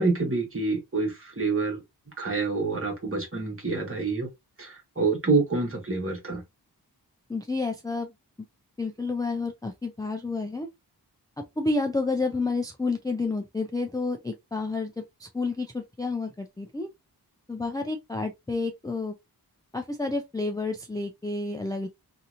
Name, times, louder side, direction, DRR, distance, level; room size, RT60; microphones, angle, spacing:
voice 1, 0.0-1.8 2.2-4.3 4.6-6.4, right 3 dB, 35° right, 1.2 m, -27 dB
voice 2, 7.3-8.1 8.8-10.7 11.6-16.9 17.5-19.1 19.7-21.9, left 3 dB, 10° left, 0.3 m, -30 dB
2.8 x 2.7 x 2.4 m
wide cardioid pair, 90°, 39 cm